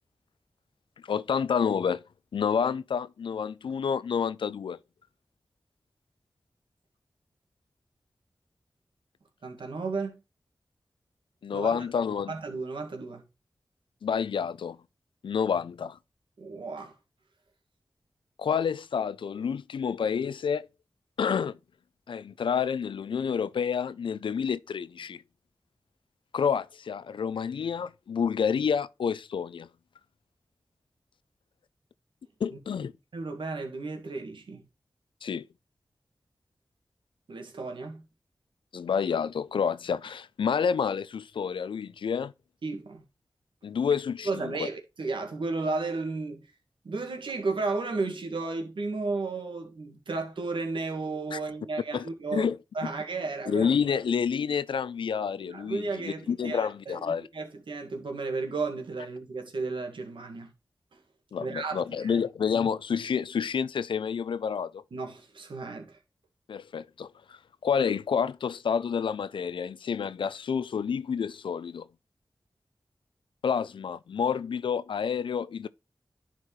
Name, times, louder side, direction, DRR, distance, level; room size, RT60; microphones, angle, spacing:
voice 1, 1.1-2.0 2.3-4.8 11.4-12.3 14.0-14.8 15.2-16.0 18.4-20.7 21.2-21.6 22.1-25.2 26.3-29.7 32.4-32.9 35.2-35.4 38.7-42.3 43.6-44.5 51.3-51.4 51.9-52.6 53.5-57.3 61.3-64.8 66.5-71.9 73.4-75.7, left 7 dB, 90° left, 0.4 m, -29 dB
voice 2, 9.4-10.2 11.5-11.8 12.3-13.3 16.4-16.9 33.1-34.6 37.3-38.0 42.6-43.0 44.2-46.5 46.8-53.7 55.4-60.5 61.4-62.2 64.9-66.0, right 3 dB, 85° right, 1.8 m, -33 dB
10.5 x 4.5 x 3.1 m
cardioid pair, 50°, 8 cm